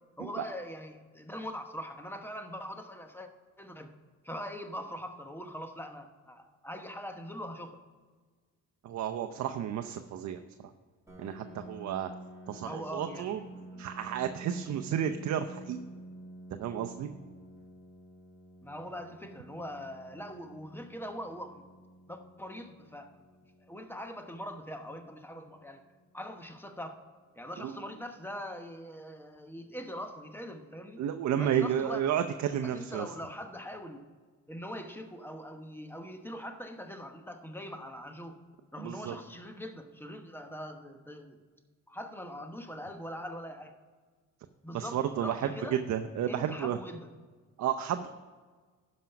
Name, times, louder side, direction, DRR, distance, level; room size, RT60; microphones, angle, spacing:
voice 1, 0.2-3.3 3.6-3.9 4.2-7.8 12.6-13.9 15.0-15.1 18.6-21.6 22.1-23.3 23.6-25.8 26.1-27.0 27.4-31.0 31.4-32.0 32.6-34.0 34.5-38.4 38.7-41.4 41.9-43.7 44.6-45.8 46.3-47.1, equal, 5° left, 6 dB, 1.1 m, -42 dB
voice 2, 8.8-10.4 11.2-12.1 12.5-13.4 13.8-15.8 16.6-17.1 27.6-27.7 31.0-33.1 38.8-39.2 44.7-46.8 47.6-48.1, right 9 dB, 65° right, 7 dB, 0.6 m, -32 dB
Piano, 11.1-26.5, right 1 dB, 10° right, 2.4 m, -50 dB
12.0 x 5.3 x 5.7 m, 1.5 s
cardioid pair, 90°, 30 cm